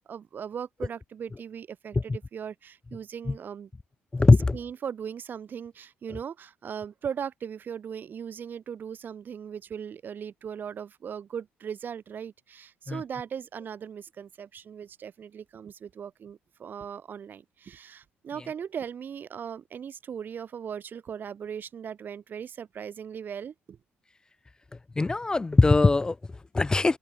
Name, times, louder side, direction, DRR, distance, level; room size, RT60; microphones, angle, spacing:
voice 1, 0.0-3.7 4.5-23.8, right 7 dB, 45° right, 1.5 m, -38 dB
voice 2, 4.1-4.6 12.9-13.0 25.0-27.0, left 3 dB, 20° left, 0.5 m, -21 dB
open air
cardioid pair, 100°, 4 cm